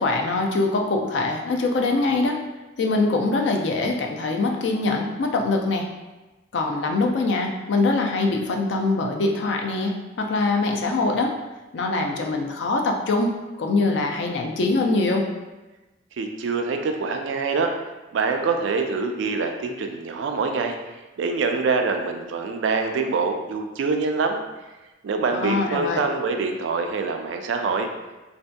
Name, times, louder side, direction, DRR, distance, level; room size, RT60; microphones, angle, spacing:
voice 1, 0.0-2.4 2.8-5.9 6.5-11.4 11.7-13.3 13.6-15.3 25.3-26.0, left 3 dB, 70° left, 2 dB, 0.4 m, -23 dB
voice 2, 16.2-17.7 18.1-20.8 21.2-24.4 25.0-27.9, right 4 dB, 80° right, 5 dB, 0.3 m, -25 dB
3.3 x 2.6 x 2.2 m, 1.1 s
head